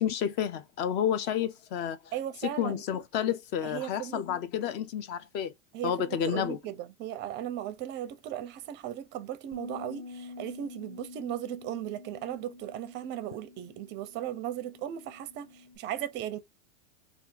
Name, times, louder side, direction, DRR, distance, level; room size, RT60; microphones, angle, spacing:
voice 1, 0.0-2.1 2.4-5.5 5.8-6.6, left 9 dB, 30° left, 0.4 m, -30 dB
voice 2, 2.1-2.8 3.6-4.2 5.7-16.4, right 11 dB, 30° right, 0.5 m, -37 dB
Bass guitar, 9.5-15.8, left 4 dB, 10° left, 0.8 m, -47 dB
2.7 x 2.5 x 3.7 m
supercardioid pair, 130°, 39 cm